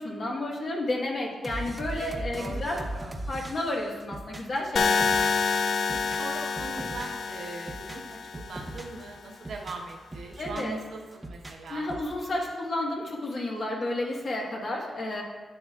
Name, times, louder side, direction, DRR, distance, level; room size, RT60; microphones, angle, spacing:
voice 1, 0.0-5.1 10.4-10.8 11.7-15.2, left 1 dB, 50° left, -2 dB, 1.5 m, -31 dB
sound 1, 1.4-5.5 5.8-7.2 7.6-9.0 9.3-10.8 11.1-12.1, right 1 dB, 15° right, 0.7 m, -39 dB
voice 2, 1.9-3.1 5.9-11.9, right 3 dB, 80° right, 0 dB, 1.1 m, -41 dB
sound 2, 4.8-8.8, left 5 dB, 65° left, 0.3 m, -28 dB
10.0 x 7.1 x 2.4 m, 1.3 s
wide cardioid pair, 120°, 0 cm